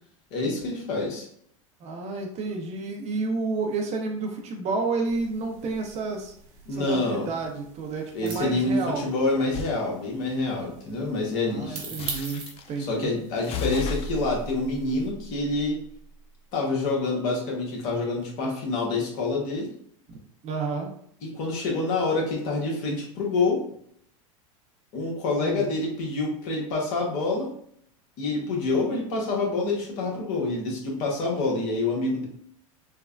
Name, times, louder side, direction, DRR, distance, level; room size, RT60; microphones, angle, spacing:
voice 1, 0.3-1.3 6.7-7.3 8.1-11.9 12.8-15.8 16.5-19.7 21.2-23.6 24.9-27.5 28.2-32.2, left 3 dB, 55° left, -1 dB, 1.1 m, -27 dB
voice 2, 1.8-6.3 6.7-9.1 11.4-13.1 20.4-20.9 25.4-25.7, right 3 dB, 40° right, 2 dB, 0.7 m, -30 dB
sound 1, 5.0-15.1, right 4 dB, 55° right, 1.0 m, -44 dB
sound 2, 9.5-9.8 12.0-12.7 13.4-16.1, left 4 dB, 35° left, 0.4 m, -35 dB
3.2 x 2.1 x 2.4 m, 0.64 s
hypercardioid pair, 95°, 18 cm